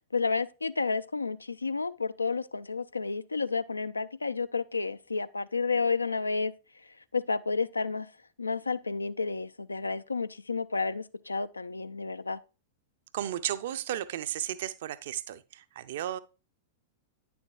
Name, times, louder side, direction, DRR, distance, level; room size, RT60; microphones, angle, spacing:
voice 1, 0.1-6.5 7.1-8.1 8.4-12.4, left 4 dB, 80° left, 0.3 m, -31 dB
voice 2, 13.1-16.2, right 12 dB, 55° right, 0.4 m, -34 dB
9.4 x 6.9 x 2.3 m
figure-of-eight pair, 95°, 0 cm